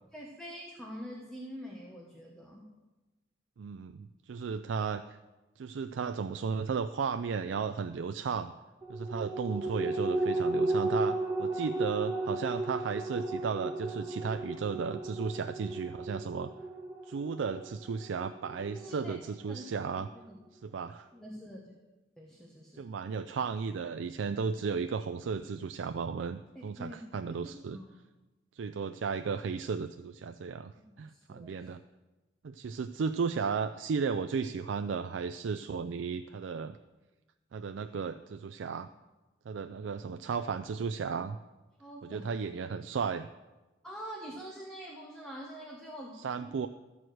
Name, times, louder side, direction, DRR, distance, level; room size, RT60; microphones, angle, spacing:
voice 1, 0.1-2.7 18.7-19.2 19.5-20.4 21.1-21.7 22.2-22.9 26.5-27.9 30.8-31.7 41.8-42.3 43.8-46.2, equal, 5° left, -3 dB, 1.2 m, -45 dB
voice 2, 3.6-5.2 5.6-8.5 8.9-16.5 17.1-20.1 20.6-21.1 22.8-27.8 28.6-30.7 31.0-31.8 32.4-36.8 37.5-38.9 39.5-41.4 42.1-43.3 46.2-46.7, right 5 dB, 70° right, 9 dB, 0.4 m, -34 dB
sound 1, 8.8-19.6 20.0-20.1, right 2 dB, 20° right, 1.7 m, -34 dB
13.5 x 4.7 x 7.7 m, 1.1 s
head